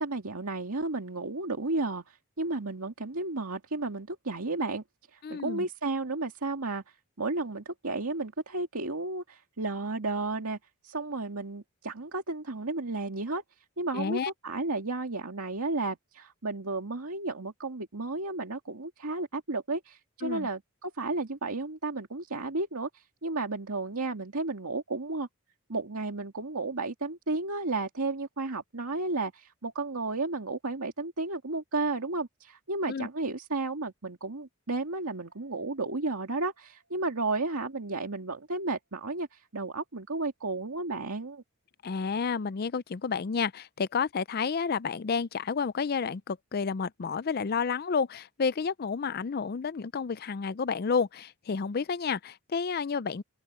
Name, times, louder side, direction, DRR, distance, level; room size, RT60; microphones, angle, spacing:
voice 1, 0.0-4.8 5.1-10.6 10.8-13.4 13.8-25.3 25.7-41.4, right 3 dB, 80° right, 2.1 m, -33 dB
voice 2, 5.2-5.7 13.9-14.3 20.2-20.5 32.9-33.1 41.8-53.2, left 5 dB, 45° left, 0.4 m, -30 dB
sound 1, 35.0-42.1, right 2 dB, 65° left, 6.2 m, -76 dB
open air
head